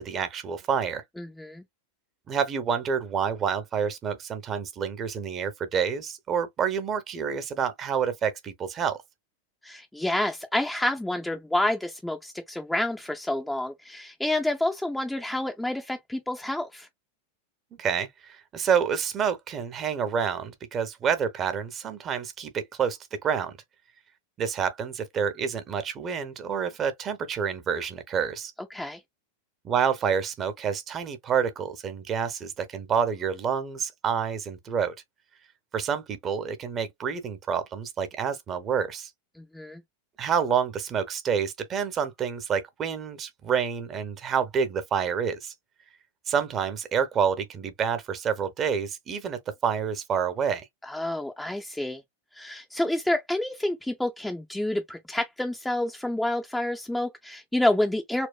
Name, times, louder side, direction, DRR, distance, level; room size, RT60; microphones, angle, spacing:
voice 1, 0.0-1.0 2.3-9.0 17.8-23.6 24.4-28.5 29.6-34.9 35.7-39.1 40.2-45.5 46.3-50.6, right 7 dB, 25° right, 0.8 m, -28 dB
voice 2, 1.2-1.6 9.6-16.9 28.7-29.0 39.4-39.8 50.8-52.0 52.3-58.3, left 1 dB, 5° left, 0.5 m, -28 dB
4.3 x 2.1 x 2.2 m
figure-of-eight pair, 90°, 0 cm